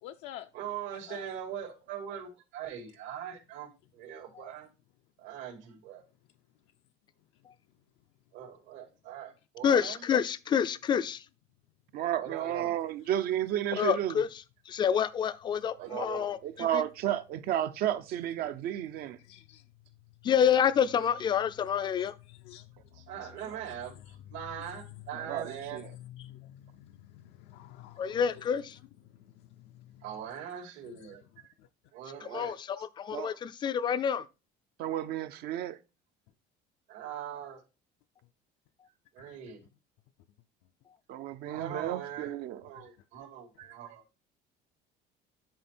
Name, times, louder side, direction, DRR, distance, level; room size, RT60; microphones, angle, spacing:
voice 1, 0.0-0.5 1.1-1.3 19.2-19.7 22.3-23.6 24.0-24.2 24.6-24.7 25.4-28.2 29.1-30.1 30.8-31.2 31.6-31.7 39.2-39.4 42.8-42.9, left 12 dB, 75° left, 0.6 m, -50 dB
voice 2, 0.5-3.7 4.0-4.7 5.2-6.0 8.3-10.0 12.2-12.7 15.8-16.3 22.9-25.8 30.0-31.2 31.9-32.6 36.9-37.6 39.1-39.6 41.5-42.3 42.6-44.0, right 9 dB, 80° right, 2.8 m, -41 dB
voice 3, 9.6-11.3 13.8-14.3 14.7-16.8 20.2-22.1 28.0-28.8 32.2-34.3, left 8 dB, 25° left, 0.4 m, -28 dB
voice 4, 11.9-14.1 16.4-19.2 23.5-23.6 25.1-25.9 33.1-33.4 34.8-35.8 41.1-42.6, right 11 dB, 55° right, 0.6 m, -32 dB
10.5 x 4.2 x 4.3 m
cardioid pair, 170°, 19 cm